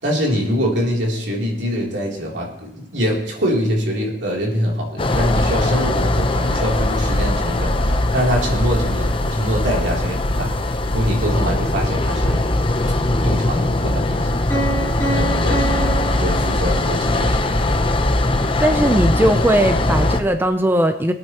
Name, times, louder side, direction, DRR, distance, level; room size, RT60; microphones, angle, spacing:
voice 1, 0.0-10.5 10.9-12.4 13.2-14.3 15.0-17.9, equal, 80° right, -2 dB, 3.2 m, -24 dB
sound 1, 5.0-20.2, left 1 dB, 30° left, 0.8 m, -20 dB
Piano, 14.5-17.3, right 2 dB, 15° left, 3.1 m, -27 dB
voice 2, 18.6-21.1, right 1 dB, 10° right, 7 dB, 0.6 m, -18 dB
23.5 x 9.0 x 3.0 m, 0.76 s
head